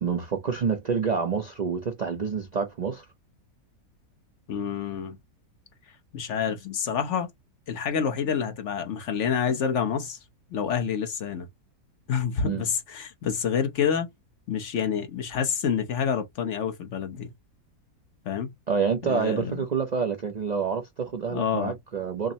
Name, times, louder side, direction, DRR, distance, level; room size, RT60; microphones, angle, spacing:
voice 1, 0.0-3.1 12.4-12.6 18.7-22.3, right 6 dB, 85° right, 0.3 m, -28 dB
voice 2, 4.5-5.2 6.1-7.3 7.7-10.2 10.5-11.5 12.1-14.1 14.5-17.3 18.2-18.5 19.0-19.7 21.3-21.8, left 7 dB, 55° left, 0.9 m, -28 dB
6.1 x 2.0 x 2.7 m
omnidirectional pair, 1.7 m